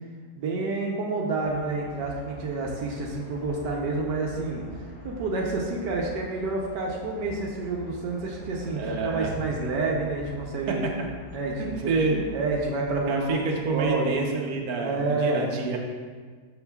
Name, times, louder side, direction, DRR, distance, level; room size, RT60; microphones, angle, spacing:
voice 1, 0.3-4.6 5.0-10.8 11.3-11.9 12.3-13.4 13.7-15.5, right 3 dB, 75° right, -1 dB, 1.4 m, -29 dB
sound 1, 1.4-13.9, equal, 90° left, 2.1 m, -44 dB
voice 2, 8.7-9.3 10.7-10.8 11.5-12.2 13.1-15.8, right 4 dB, 60° right, 0 dB, 1.3 m, -28 dB
12.5 x 4.8 x 2.4 m, 1.5 s
omnidirectional pair, 1.9 m